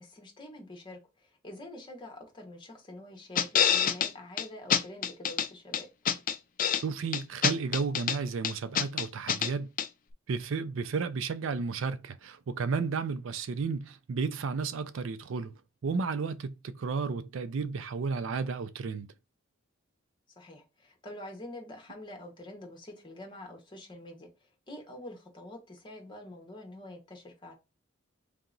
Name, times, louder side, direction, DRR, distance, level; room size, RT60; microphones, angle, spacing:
voice 1, 0.0-5.9 20.4-24.3 24.7-27.5, left 1 dB, 25° left, 1.2 m, -46 dB
sound 1, 3.4-4.1 4.4-4.5 4.7-5.5 5.7-6.8 7.1-8.2 8.4-9.5 9.8-9.9, left 8 dB, 40° left, 0.4 m, -26 dB
voice 2, 6.8-9.7 10.3-15.5 15.8-19.1, right 5 dB, 65° right, 0.4 m, -33 dB
3.3 x 2.9 x 3.9 m
head